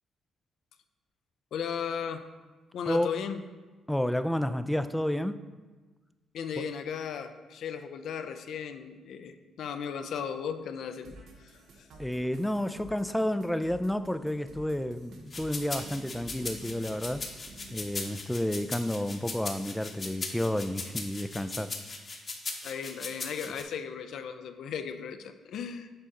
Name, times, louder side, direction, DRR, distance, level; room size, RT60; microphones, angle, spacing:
voice 1, 1.5-2.2 2.7-3.4 6.3-11.9 22.6-25.9, left 7 dB, 70° left, 0.4 m, -36 dB
voice 2, 3.9-5.4 12.0-17.3 17.7-21.7, left 1 dB, 5° left, 0.3 m, -30 dB
sound 1, 11.0-17.8, right 1 dB, 75° right, 0.9 m, -50 dB
sound 2, 15.3-23.6, left 3 dB, 40° left, 0.9 m, -38 dB
7.7 x 4.0 x 3.8 m
cardioid pair, 90°, 0 cm